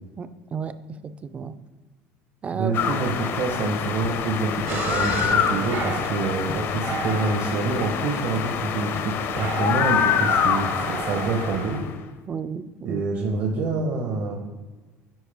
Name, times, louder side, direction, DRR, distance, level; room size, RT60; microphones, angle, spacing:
voice 1, 0.2-0.7 1.0-1.5 2.4-2.7 12.3-13.0, right 6 dB, 25° right, 12 dB, 0.4 m, -32 dB
voice 2, 2.5-11.8 12.8-14.4, right 3 dB, 60° right, 0 dB, 1.1 m, -27 dB
sound 1, 2.7-11.9, left 8 dB, 50° left, 0.6 m, -26 dB
sound 2, 4.7-11.8, right 6 dB, 45° right, 0.8 m, -34 dB
9.3 x 5.0 x 3.5 m, 1.3 s
cardioid pair, 130°, 5 cm